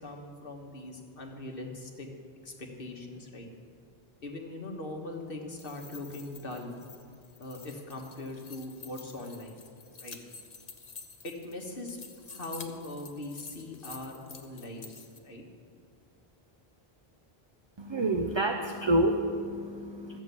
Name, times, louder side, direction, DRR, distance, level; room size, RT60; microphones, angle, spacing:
voice 1, 0.0-2.1 2.4-3.5 4.2-6.7 7.4-9.6 10.0-10.2 11.2-12.0 12.3-15.4, left 2 dB, 60° left, 1 dB, 1.7 m, -41 dB
sound 1, 5.4-15.2, left 5 dB, 40° left, 0.9 m, -49 dB
voice 2, 17.8-20.2, right 1 dB, 30° right, 4 dB, 0.6 m, -28 dB
13.0 x 7.2 x 8.3 m, 2.3 s
omnidirectional pair, 1.1 m